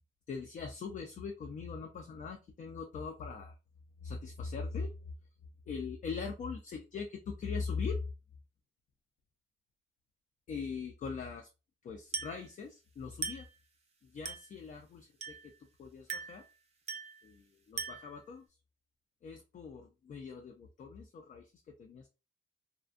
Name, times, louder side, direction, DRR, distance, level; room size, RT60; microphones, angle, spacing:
voice 1, 0.3-3.5 4.0-5.1 5.7-8.1 10.5-11.5 11.8-13.5 14.1-15.4 15.8-16.4 17.2-18.4 19.2-21.5 21.8-22.1, left 5 dB, 40° left, 3 dB, 0.4 m, -41 dB
Glass, 12.1-12.5 13.2-13.6 14.3-14.6 15.2-15.6 16.1-16.5 16.9-17.2 17.8-18.2, right 5 dB, 30° right, 0.5 m, -40 dB
2.5 x 2.1 x 2.4 m, 0.29 s
cardioid pair, 140°, 21 cm